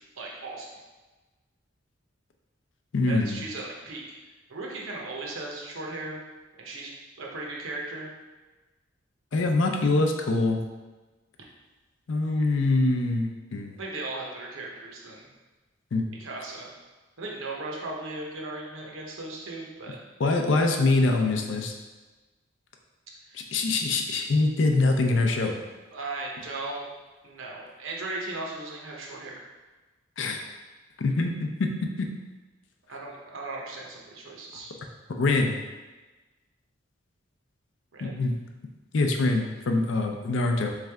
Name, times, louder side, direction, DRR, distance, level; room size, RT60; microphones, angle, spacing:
voice 1, 0.2-0.7 3.1-4.0 4.5-6.2 6.6-6.9 7.2-8.1 13.8-15.3 16.2-16.7 17.2-20.0 23.3-23.4 25.9-26.9 27.2-29.4 32.9-34.7 37.9-38.2, right 2 dB, 85° right, -2 dB, 0.8 m, -37 dB
voice 2, 2.9-3.4 9.3-10.6 12.1-13.8 15.9-16.1 20.2-21.7 23.3-25.5 30.2-30.4 31.0-31.7 32.0-32.1 35.2-35.6 38.0-38.3 38.9-40.7, left 2 dB, 70° left, 3 dB, 0.5 m, -24 dB
3.6 x 3.3 x 3.4 m, 1.2 s
head